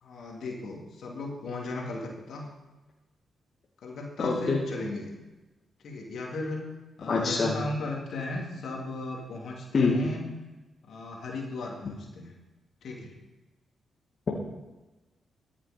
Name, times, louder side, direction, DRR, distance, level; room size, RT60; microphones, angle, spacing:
voice 1, 0.0-2.5 3.8-5.1 5.8-6.6 7.0-10.2 10.8-12.3 12.8-13.1, left 2 dB, 70° left, 0 dB, 2.7 m, -36 dB
voice 2, 4.2-4.6 7.1-7.5 9.7-9.9, left 4 dB, 50° left, -2 dB, 2.2 m, -24 dB
14.0 x 7.4 x 5.2 m, 1.1 s
supercardioid pair, 50°, 0 cm